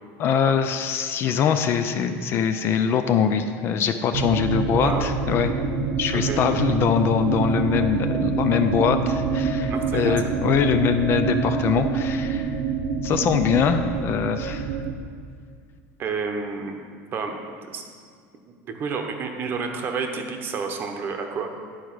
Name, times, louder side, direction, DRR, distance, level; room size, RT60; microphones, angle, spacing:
voice 1, 0.2-5.5 5.8-12.5 13.0-14.7, left 7 dB, 35° left, 8 dB, 0.4 m, -23 dB
sound 1, 4.1-14.9, right 5 dB, 60° right, 0.7 m, -26 dB
voice 2, 4.8-5.1 6.1-6.4 9.6-10.4 16.0-16.7 17.1-17.3 17.7-17.8 18.5-21.5, right 5 dB, 30° right, 4 dB, 0.9 m, -30 dB
10.0 x 4.7 x 6.2 m, 2.1 s
cardioid pair, 155°, 7 cm